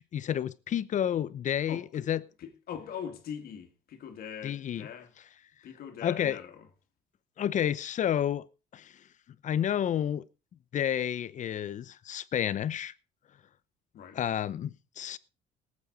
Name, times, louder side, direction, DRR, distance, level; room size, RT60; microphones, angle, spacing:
voice 1, 0.0-2.2 4.4-4.9 6.0-6.4 7.4-8.5 8.7-8.9 9.4-10.3 10.7-12.9 14.1-15.2, left 10 dB, 45° left, 0.8 m, -30 dB
voice 2, 1.7-2.1 2.4-5.1 5.6-6.7 13.9-14.2, left 8 dB, 65° left, 2.4 m, -42 dB
19.0 x 8.6 x 4.1 m
cardioid pair, 110°, 17 cm